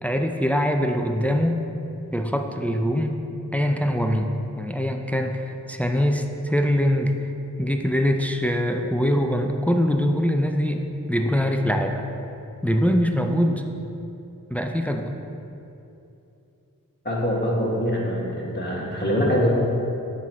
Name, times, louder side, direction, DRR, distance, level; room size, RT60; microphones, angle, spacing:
voice 1, 0.0-1.6 2.1-3.2 3.5-4.3 4.6-7.1 7.6-10.8 11.1-12.0 12.6-13.6 14.5-15.2, equal, 5° left, 4 dB, 0.5 m, -23 dB
voice 2, 17.0-19.5, equal, 30° left, -5 dB, 1.8 m, -24 dB
7.3 x 5.7 x 4.6 m, 2.8 s
cardioid pair, 50°, 34 cm